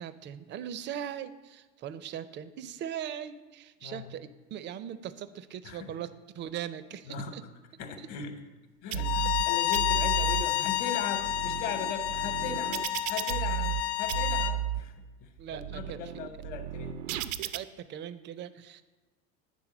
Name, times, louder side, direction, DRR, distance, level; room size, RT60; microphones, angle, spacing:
voice 1, 0.0-6.1 6.3-7.4 8.0-8.1 15.4-16.1 17.4-18.8, right 9 dB, 30° right, 13 dB, 0.4 m, -40 dB
voice 2, 5.6-5.9 7.1-7.3 7.8-8.4 8.8-14.9 15.2-17.1, left 6 dB, 50° left, 8 dB, 1.0 m, -39 dB
sound 1, 8.9-9.4 9.7-10.4 11.0-13.8 14.1-14.8 15.4-17.6, right 11 dB, 80° right, 0.5 m, -34 dB
Bowed string instrument, 9.0-14.5, left 13 dB, 65° left, 0.6 m, -30 dB
9.1 x 3.5 x 5.9 m, 1.2 s
hypercardioid pair, 100°, 40 cm